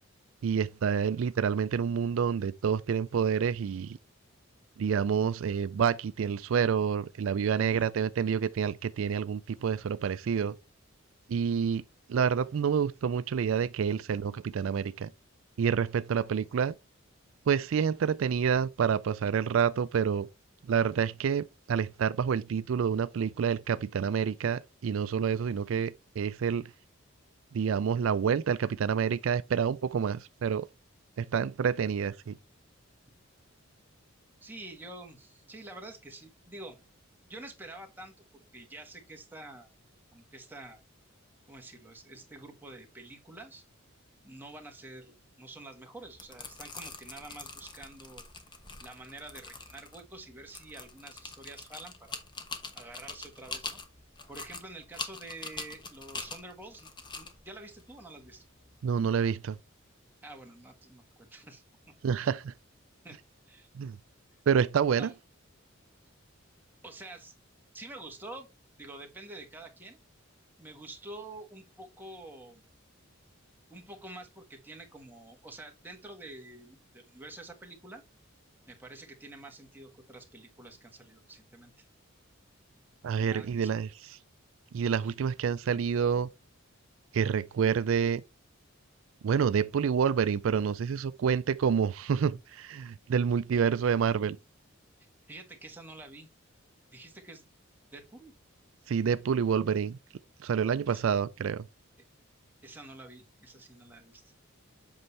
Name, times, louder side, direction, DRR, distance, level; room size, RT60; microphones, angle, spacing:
voice 1, 0.4-4.0 4.8-10.6 11.3-11.8 12.1-15.1 15.6-16.8 17.5-20.3 20.6-26.7 27.5-30.7 31.2-32.4 58.8-59.6 62.0-62.5 63.7-64.0 64.5-65.1 83.0-84.2 84.7-86.3 87.1-88.2 89.2-94.4 98.9-100.0 100.4-101.7, right 7 dB, 70° right, 0.4 m, -28 dB
voice 2, 7.6-7.9 34.4-36.8 37.3-39.7 40.1-40.8 41.5-43.6 44.2-48.3 48.8-52.2 52.7-53.8 54.3-56.9 57.2-58.5 60.2-61.6 62.2-62.3 63.0-63.2 63.5-63.7 64.9-65.1 66.8-67.3 67.7-68.5 68.8-70.0 70.6-72.6 73.7-78.0 78.6-81.8 83.2-83.7 84.9-85.1 95.3-96.3 96.9-97.4 97.9-98.3 100.9-101.0 102.6-104.3, right 2 dB, 10° right, 1.4 m, -48 dB
sound 1, 46.0-58.8, left 4 dB, 20° left, 1.0 m, -44 dB
7.9 x 5.5 x 3.2 m
head